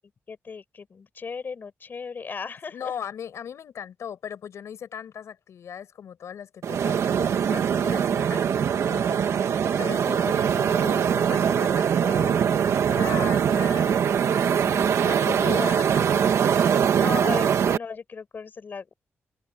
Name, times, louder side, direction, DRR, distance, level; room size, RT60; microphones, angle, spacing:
voice 1, 0.3-3.0 15.1-15.5 17.0-18.9, left 5 dB, 40° left, 6.0 m, -37 dB
voice 2, 2.7-14.0 14.6-16.2, left 8 dB, 75° left, 5.5 m, -38 dB
sound 1, 6.6-17.8, right 8 dB, 80° right, 1.8 m, -22 dB
open air
wide cardioid pair, 170°, 5 cm